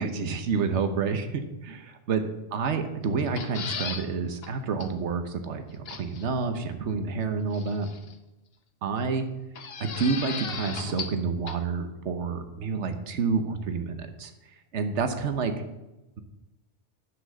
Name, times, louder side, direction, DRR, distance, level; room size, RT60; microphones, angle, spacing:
voice 1, 0.0-1.7 2.1-2.2 2.5-7.9 8.8-9.3 9.8-14.3 14.7-15.5, right 5 dB, 90° right, 7 dB, 1.2 m, -29 dB
sound 1, 3.2-4.1 4.4-4.5 4.8-4.9 5.9-6.3 7.5-8.1 9.6-11.2 11.5-11.6, left 5 dB, 60° left, 1.2 m, -36 dB
11.0 x 6.0 x 6.5 m, 0.99 s
omnidirectional pair, 1.2 m